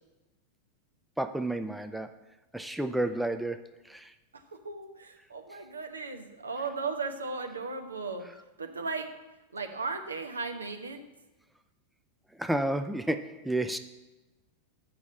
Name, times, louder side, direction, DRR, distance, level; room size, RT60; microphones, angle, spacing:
voice 1, 1.2-2.1 2.5-3.6 3.9-4.0 12.4-13.8, right 1 dB, 5° right, 8 dB, 0.5 m, -30 dB
voice 2, 4.3-8.3 8.6-9.1 9.5-11.0, right 4 dB, 75° right, 5 dB, 1.0 m, -36 dB
7.0 x 6.3 x 7.5 m, 1.1 s
figure-of-eight pair, 90°, 0 cm